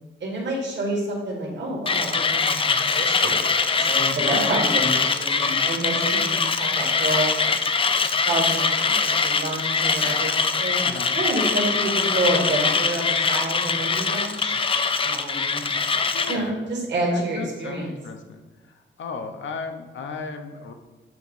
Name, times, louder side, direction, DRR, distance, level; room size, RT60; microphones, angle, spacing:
voice 1, 0.2-7.6 8.3-10.3 10.6-10.8 11.1-14.5 15.0-15.7 16.3-17.9, right 1 dB, 55° right, -3 dB, 1.8 m, -28 dB
Mechanisms, 1.9-16.4, left 5 dB, 25° left, 0.4 m, -23 dB
voice 2, 4.2-4.6 10.8-11.2 16.1-16.6 17.1-18.4 19.0-20.7, left 4 dB, 65° left, 5 dB, 0.8 m, -34 dB
7.7 x 3.0 x 5.3 m, 1.2 s
wide cardioid pair, 115°, 21 cm